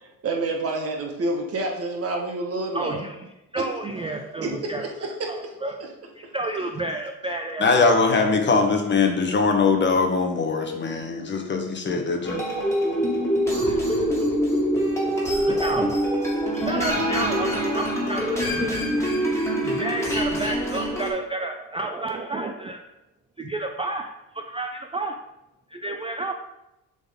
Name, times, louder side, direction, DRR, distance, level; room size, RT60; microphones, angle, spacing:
voice 1, 0.0-3.0 3.5-3.6 4.4-5.5 5.8-5.9, right 2 dB, 40° right, 1 dB, 1.4 m, -29 dB
voice 2, 2.7-5.8 6.2-7.9 13.6-14.1 15.5-16.0 16.5-18.8 19.6-22.8 23.4-25.2 25.7-26.3, right 2 dB, 15° right, 5 dB, 0.3 m, -31 dB
voice 3, 7.6-12.4, left 4 dB, 30° left, 4 dB, 1.1 m, -21 dB
sound 1, 12.2-21.1, equal, 10° left, 1.9 m, -24 dB
7.0 x 4.0 x 3.7 m, 0.92 s
cardioid pair, 105°, 35 cm